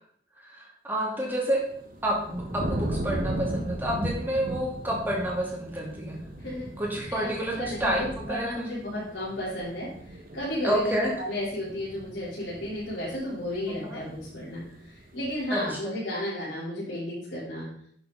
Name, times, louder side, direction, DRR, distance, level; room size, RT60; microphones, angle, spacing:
voice 1, 0.3-1.6 2.0-6.2 6.8-8.6 10.6-11.1 13.7-14.0 15.5-16.0, equal, 10° right, -3 dB, 2.5 m, -29 dB
sound 1, 1.5-15.7, right 1 dB, 50° right, 1.4 m, -37 dB
voice 2, 7.1-9.9 10.3-10.9 11.2-14.6 15.1-17.7, left 1 dB, 70° left, -10 dB, 4.4 m, -33 dB
10.5 x 6.9 x 4.2 m, 0.63 s
head